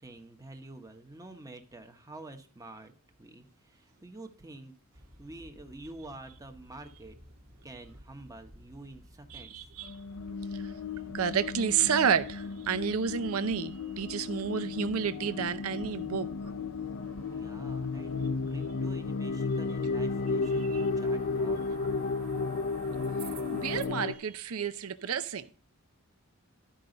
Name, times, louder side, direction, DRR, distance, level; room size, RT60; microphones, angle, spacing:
voice 1, 0.0-4.7 5.2-7.2 7.6-9.7 17.3-21.7, right 2 dB, 15° right, 1.1 m, -48 dB
sound 1, 4.9-23.8, right 2 dB, 45° right, 1.6 m, -52 dB
voice 2, 9.3-9.9 10.5-10.7 11.1-16.3 20.6-20.9 23.5-25.5, right 7 dB, 70° right, 0.6 m, -30 dB
sound 2, 9.8-24.1, left 4 dB, 65° left, 0.6 m, -33 dB
13.0 x 5.4 x 3.9 m
head